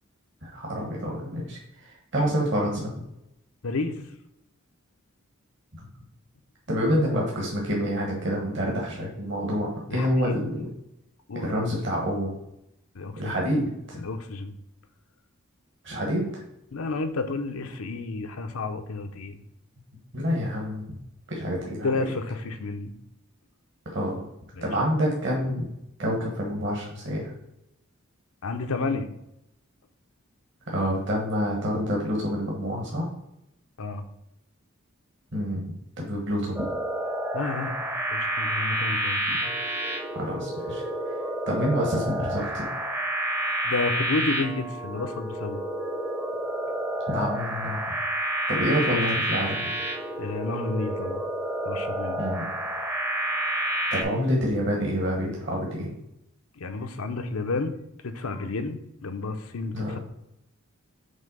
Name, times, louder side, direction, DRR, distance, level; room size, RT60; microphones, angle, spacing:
voice 1, 0.4-2.9 6.7-10.7 11.4-12.3 13.2-14.0 15.8-16.4 20.1-20.8 21.3-21.9 23.9-24.2 24.6-25.7 26.0-27.3 30.7-33.1 35.3-35.7 36.0-36.6 40.1-40.8 41.5-42.6 47.1-47.9 48.5-49.6 52.2-52.4 53.9-55.9 59.7-60.0, equal, 55° right, -2 dB, 1.3 m, -27 dB
voice 2, 3.6-4.0 9.9-10.4 11.3-11.7 12.9-13.4 14.0-14.5 16.7-19.4 21.8-22.9 24.5-24.7 28.4-29.1 33.8-34.0 37.3-39.2 43.6-45.6 50.2-51.2 51.6-52.2 56.6-57.7 58.0-60.0, left 3 dB, 85° left, 7 dB, 0.7 m, -31 dB
sound 1, 36.6-54.0, right 1 dB, 10° right, 0.6 m, -29 dB
5.5 x 3.4 x 5.4 m, 0.84 s
head